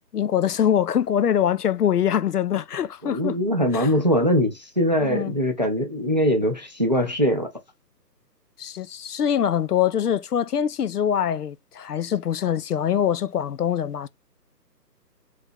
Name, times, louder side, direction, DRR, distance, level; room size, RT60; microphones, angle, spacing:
voice 1, 0.1-3.4 3.7-3.9 5.0-5.3 8.6-14.1, left 9 dB, 70° left, 0.6 m, -23 dB
voice 2, 3.0-7.5, equal, 30° right, 0.5 m, -22 dB
3.4 x 2.8 x 3.5 m
hypercardioid pair, 165°, 49 cm